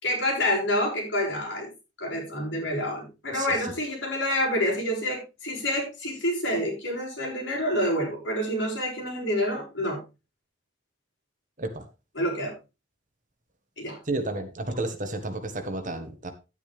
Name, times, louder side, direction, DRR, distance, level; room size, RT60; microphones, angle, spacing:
voice 1, 0.0-1.7 2.0-10.0 12.2-12.5 13.8-14.0 14.7-14.9, left 1 dB, 60° left, -2 dB, 5.6 m, -28 dB
voice 2, 3.3-3.7 11.6-11.9 14.0-16.3, right 2 dB, 40° right, 7 dB, 1.5 m, -32 dB
10.5 x 9.3 x 3.4 m, 0.27 s
head